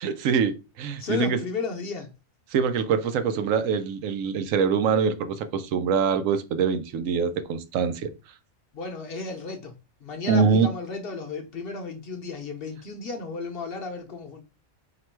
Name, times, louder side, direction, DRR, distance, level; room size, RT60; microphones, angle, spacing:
voice 1, 0.0-1.4 2.5-8.1 10.3-10.7, right 6 dB, 80° right, 1.0 m, -24 dB
voice 2, 1.0-2.1 8.7-9.7 10.0-14.4, left 4 dB, 55° left, 0.8 m, -33 dB
3.2 x 2.9 x 4.4 m
omnidirectional pair, 1.4 m